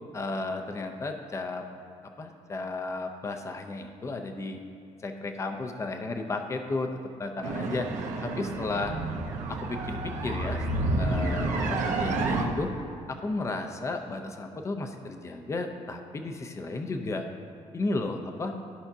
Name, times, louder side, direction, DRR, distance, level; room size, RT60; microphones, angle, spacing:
voice 1, 0.1-1.6 2.2-4.6 5.0-7.9 8.2-8.9 9.5-10.6 11.0-12.7 13.1-17.3 17.7-18.6, left 3 dB, 20° left, 5 dB, 0.5 m, -33 dB
sound 1, 7.4-12.4, right 2 dB, 80° right, 1.0 m, -30 dB
14.0 x 5.7 x 2.7 m, 2.6 s
cardioid pair, 160°, 13 cm